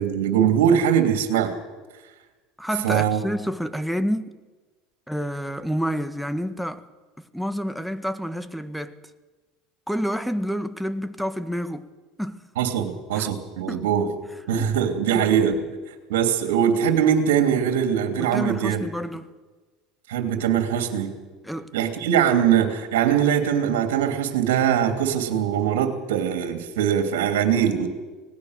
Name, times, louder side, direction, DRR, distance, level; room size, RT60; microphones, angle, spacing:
voice 1, 0.0-1.5 2.8-3.2 12.6-14.1 14.5-15.5 16.1-18.8 20.1-21.1 21.7-27.9, right 9 dB, 80° right, 3.0 m, -21 dB
voice 2, 2.6-4.4 5.1-6.8 7.2-9.0 9.9-11.9 12.2-12.4 13.1-13.3 13.7-13.9 14.6-14.7 15.1-15.3 18.2-19.3 21.4-21.7, equal, ahead, 1.6 m, -29 dB
25.5 x 19.0 x 6.7 m
hypercardioid pair, 85°, 0 cm